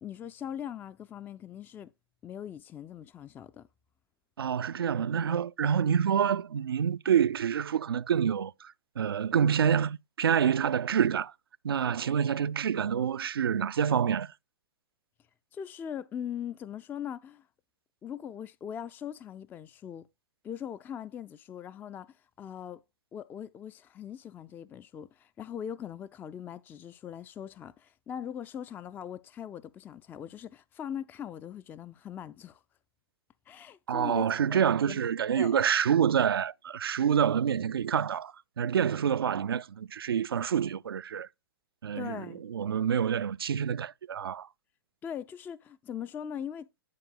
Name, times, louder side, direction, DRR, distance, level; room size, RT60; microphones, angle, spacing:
voice 1, 0.0-1.9 2.2-3.7 15.5-17.5 18.0-20.1 20.4-22.8 23.1-32.6 33.5-34.6 34.8-35.0 35.4-35.6 42.0-42.4 45.0-46.7, left 9 dB, 15° left, 0.3 m, -40 dB
voice 2, 4.4-11.3 11.6-14.3 33.9-41.3 41.8-42.2 42.5-44.5, right 8 dB, 80° right, 0.4 m, -27 dB
10.5 x 4.5 x 3.7 m
hypercardioid pair, 110°, 12 cm